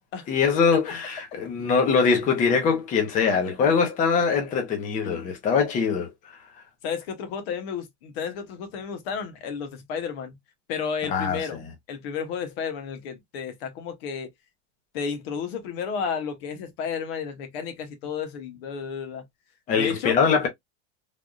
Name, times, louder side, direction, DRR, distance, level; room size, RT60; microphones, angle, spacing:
voice 1, 0.3-6.4 11.1-11.6 19.7-20.5, left 5 dB, 20° left, 0.7 m, -23 dB
voice 2, 6.8-10.4 10.7-11.6 11.9-14.3 14.9-19.2 19.8-20.2, left 6 dB, 60° left, 1.0 m, -32 dB
3.4 x 2.3 x 2.4 m
supercardioid pair, 165°, 34 cm